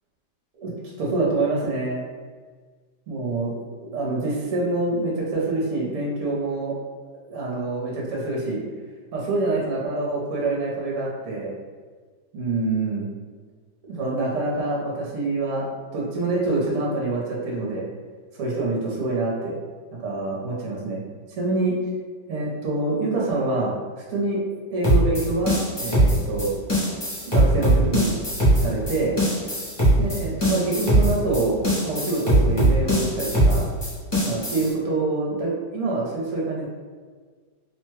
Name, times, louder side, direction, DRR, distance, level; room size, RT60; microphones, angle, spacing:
voice 1, 1.0-2.0 3.1-6.8 7.3-8.6 9.1-11.5 12.3-13.1 13.8-15.7 15.9-17.8 18.3-19.6 20.0-21.0 21.4-21.8 22.3-23.8 24.1-24.4 24.7-26.5 27.3-28.1 28.5-29.2 30.0-33.7 34.2-36.7, right 2 dB, 65° right, -3 dB, 1.1 m, -26 dB
sound 1, 24.8-34.7, right 1 dB, 25° left, 0.5 m, -20 dB
3.0 x 2.2 x 3.0 m, 1.5 s
omnidirectional pair, 1.8 m